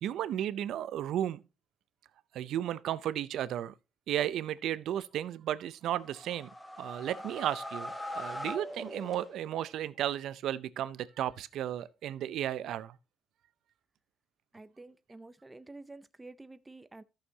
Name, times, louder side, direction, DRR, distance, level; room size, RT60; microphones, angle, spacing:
voice 1, 0.0-1.4 2.3-3.7 4.1-6.5 6.8-13.0, right 11 dB, 80° right, 0.5 m, -34 dB
sound 1, 5.9-9.7, left 1 dB, 10° left, 1.0 m, -41 dB
voice 2, 14.5-17.0, right 2 dB, 15° right, 0.5 m, -50 dB
14.0 x 6.4 x 2.7 m
cardioid pair, 90°, 0 cm